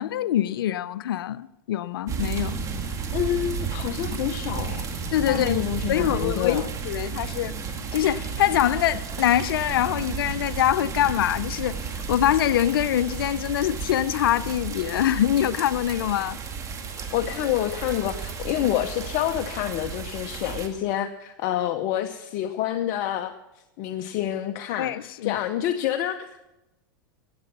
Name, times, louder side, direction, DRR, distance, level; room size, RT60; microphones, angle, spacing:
voice 1, 0.0-2.6 5.1-7.5 7.9-16.4 24.8-25.4, left 11 dB, 80° left, 0.5 m, -24 dB
sound 1, 2.1-20.7, right 6 dB, 25° right, 2.1 m, -33 dB
voice 2, 3.1-5.0 5.3-6.7 17.1-23.3 23.8-26.4, left 12 dB, 50° left, 0.8 m, -28 dB
16.5 x 8.7 x 6.0 m
hypercardioid pair, 120°, 12 cm